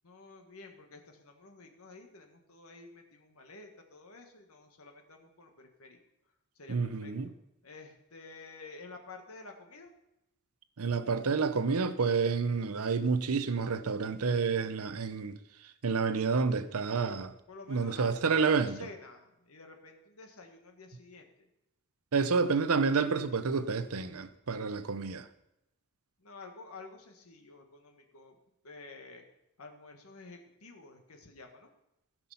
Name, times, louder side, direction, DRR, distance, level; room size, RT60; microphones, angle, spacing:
voice 1, 0.0-6.0 6.5-7.4 7.6-9.9 17.5-21.5 22.3-22.5 26.2-28.3 28.6-29.2 29.6-31.7, left 3 dB, 70° left, 1.5 m, -50 dB
voice 2, 6.7-7.3 10.8-15.4 15.8-17.3 17.7-18.8 22.1-25.3, right 5 dB, 75° right, 0.7 m, -29 dB
15.0 x 6.0 x 5.5 m
head